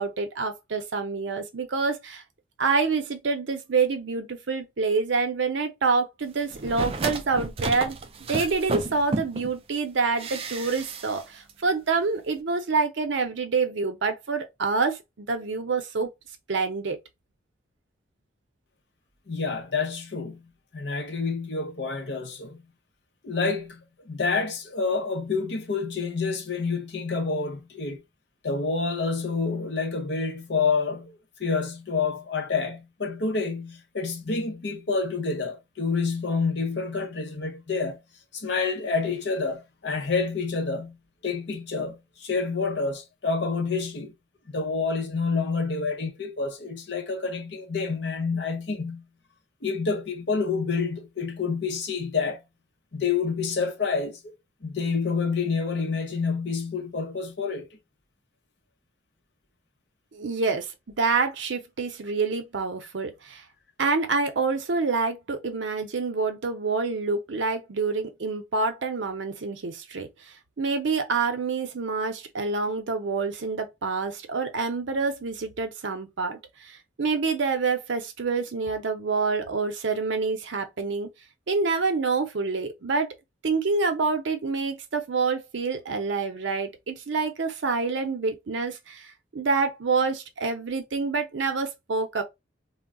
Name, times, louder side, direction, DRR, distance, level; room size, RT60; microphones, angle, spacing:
voice 1, 0.0-2.2 2.6-8.0 8.3-16.1 16.5-17.0 60.1-63.4 63.8-81.1 81.5-83.1 83.4-92.2, right 4 dB, 75° right, 0.6 m, -27 dB
sound 1, 6.5-9.5 10.2-11.2 11.5-11.6, right 3 dB, 30° right, 0.3 m, -32 dB
voice 2, 19.3-22.6 23.2-28.0 28.4-38.0 38.3-41.0 41.2-44.1 44.5-49.1 49.6-52.4 52.9-54.3 54.6-57.7, left 4 dB, 65° left, 0.7 m, -28 dB
2.3 x 2.1 x 3.6 m
head